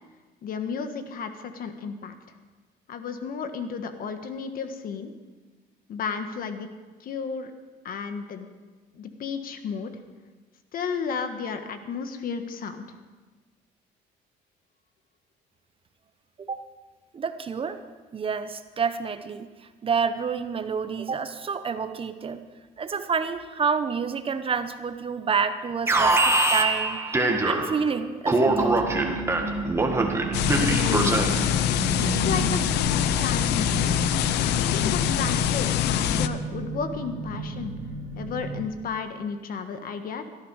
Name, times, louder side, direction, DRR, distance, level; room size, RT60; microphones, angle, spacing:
voice 1, 0.4-2.1 2.9-5.1 5.9-6.7 7.0-7.5 7.8-8.5 8.9-9.9 10.7-12.8 30.6-31.6 32.1-34.0 34.6-37.7 38.1-40.2, left 6 dB, 55° left, 8 dB, 1.5 m, -33 dB
voice 2, 17.1-17.8 18.1-19.5 19.8-22.4 22.8-27.2 27.4-28.7, right 6 dB, 35° right, 10 dB, 0.9 m, -28 dB
Alarm, 25.9-27.9 28.3-31.5, right 2 dB, 15° right, 1.7 m, -23 dB
sound 1, 28.4-38.7, right 4 dB, 70° right, 2.2 m, -34 dB
sound 2, 30.3-36.3, left 11 dB, 85° left, 0.7 m, -24 dB
17.5 x 13.0 x 4.9 m, 1.3 s
cardioid pair, 110°, 17 cm